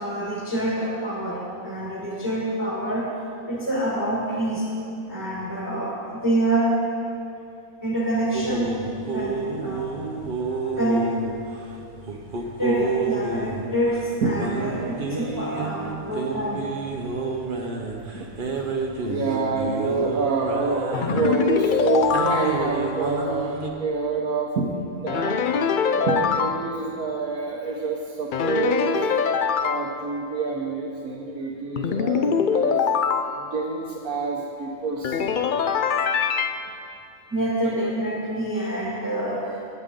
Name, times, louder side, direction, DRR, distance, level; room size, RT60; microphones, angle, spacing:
voice 1, 0.0-3.1 3.5-4.7 5.1-6.8 7.8-8.8 9.1-9.9 10.7-11.1 12.6-16.7 37.3-39.6, right 1 dB, 10° right, -5 dB, 1.7 m, -26 dB
sound 1, 8.3-23.7, right 3 dB, 40° right, 1.0 m, -30 dB
voice 2, 12.1-12.5 14.2-14.5 16.3-16.4 16.9-17.0 18.1-18.7 19.1-29.3 29.6-32.8 33.4-35.7, right 4 dB, 80° right, -3 dB, 1.4 m, -28 dB
sound 2, 20.9-22.9 25.1-26.6 28.3-29.9 31.8-33.2 35.0-36.5, left 6 dB, 70° left, 0.4 m, -23 dB
19.0 x 8.1 x 3.8 m, 2.6 s
omnidirectional pair, 1.5 m